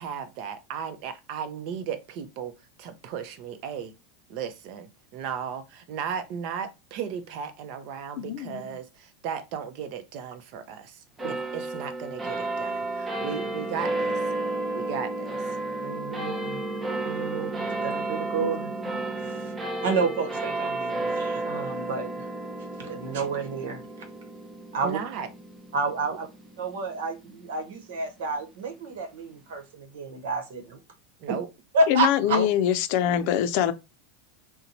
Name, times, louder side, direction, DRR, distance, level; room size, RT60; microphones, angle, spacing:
voice 1, 0.0-3.9 4.3-14.3 14.7-15.6 24.8-25.3 31.2-31.5 32.2-32.5, right 7 dB, 55° right, 0.6 m, -35 dB
voice 2, 8.2-8.7 18.4-18.6 31.9-33.7, left 10 dB, 55° left, 0.5 m, -24 dB
sound 1, 11.2-27.9, right 2 dB, 15° right, 0.6 m, -32 dB
voice 3, 15.8-16.6 17.0-18.7 19.1-19.5 19.8-22.3 22.8-23.8 24.7-25.0 25.7-26.3 26.6-30.8 31.3-31.4 31.7-32.4, right 3 dB, 85° right, 0.9 m, -30 dB
2.8 x 2.2 x 3.9 m
supercardioid pair, 135°, 0 cm